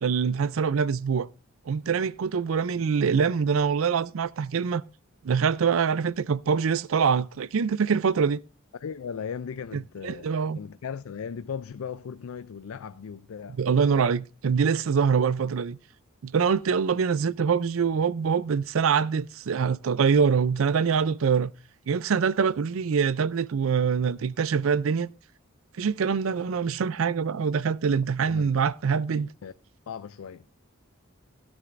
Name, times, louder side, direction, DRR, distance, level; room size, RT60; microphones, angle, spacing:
voice 1, 0.0-1.3 1.7-4.8 5.2-8.4 9.7-10.6 13.6-15.8 16.2-21.5 21.9-25.1 25.8-29.3, right 6 dB, 75° right, 0.4 m, -24 dB
voice 2, 8.8-10.3 10.5-13.6 28.3-28.6 29.1-29.5 29.9-30.5, left 6 dB, 80° left, 0.4 m, -37 dB
16.5 x 9.7 x 2.5 m
head